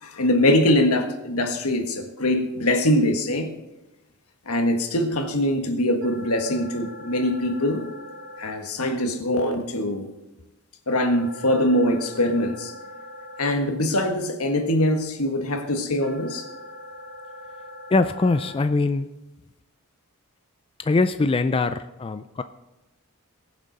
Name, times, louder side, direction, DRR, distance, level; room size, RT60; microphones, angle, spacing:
voice 1, 0.0-3.5 4.4-7.9 8.4-10.1 10.9-12.7 13.4-16.5, left 1 dB, 75° left, 5 dB, 1.6 m, -23 dB
sound 1, 6.0-8.5 11.0-13.5 16.0-18.5, left 1 dB, 65° right, 4.9 m, -41 dB
voice 2, 17.9-19.1 20.8-22.4, left 3 dB, 25° left, 10 dB, 0.4 m, -22 dB
22.0 x 7.4 x 4.1 m, 0.99 s
head